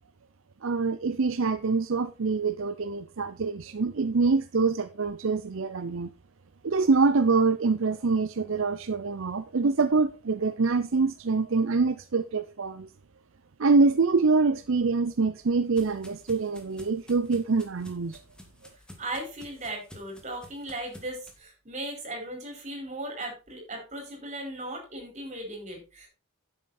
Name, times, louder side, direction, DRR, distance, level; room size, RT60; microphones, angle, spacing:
voice 1, 0.6-6.1 6.6-12.9 13.6-18.2, right 4 dB, 60° right, 0.6 m, -25 dB
sound 1, 14.8-21.4, left 1 dB, 5° left, 1.9 m, -52 dB
voice 2, 19.0-26.1, right 1 dB, 30° right, 4.8 m, -37 dB
10.5 x 8.0 x 4.2 m
head